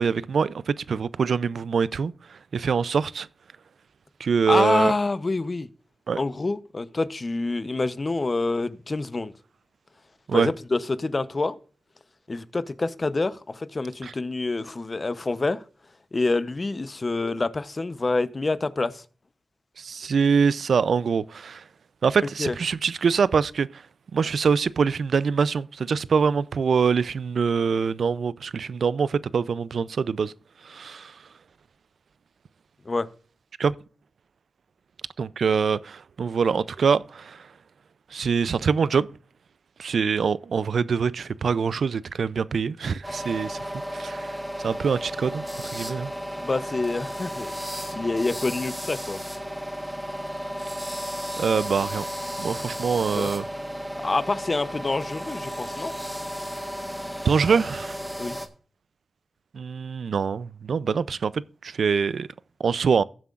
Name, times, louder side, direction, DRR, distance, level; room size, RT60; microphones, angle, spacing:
voice 1, 0.0-3.3 4.2-4.9 6.1-6.2 10.3-10.5 14.0-14.1 19.8-21.6 22.0-23.8 24.1-30.3 30.6-31.2 33.6-33.7 35.2-37.5 38.1-39.1 39.8-44.4 44.6-45.5 45.7-46.1 51.4-52.0 52.4-53.5 57.2-58.0 59.5-62.3 62.6-63.0, right 6 dB, 80° right, 0.4 m, -24 dB
voice 2, 4.5-5.7 6.2-9.3 10.3-11.6 12.3-15.6 16.1-19.0 22.4-22.5 32.9-33.1 46.4-47.5 47.9-49.2 52.9-53.3 54.0-55.9 58.2-58.4, left 3 dB, 40° left, 0.7 m, -27 dB
sound 1, 43.0-58.5, equal, 5° right, 1.5 m, -34 dB
18.5 x 7.6 x 2.4 m
cardioid pair, 70°, 0 cm